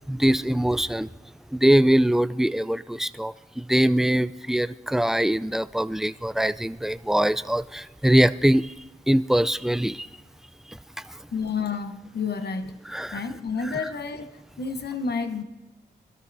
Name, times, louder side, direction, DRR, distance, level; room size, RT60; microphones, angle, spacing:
voice 1, 0.1-1.1 1.5-8.7 9.1-10.1 12.9-13.2, right 1 dB, ahead, 0.4 m, -22 dB
voice 2, 11.3-12.8 13.1-15.4, left 5 dB, 60° left, 1.0 m, -30 dB
21.5 x 12.5 x 2.7 m
cardioid pair, 55°, 19 cm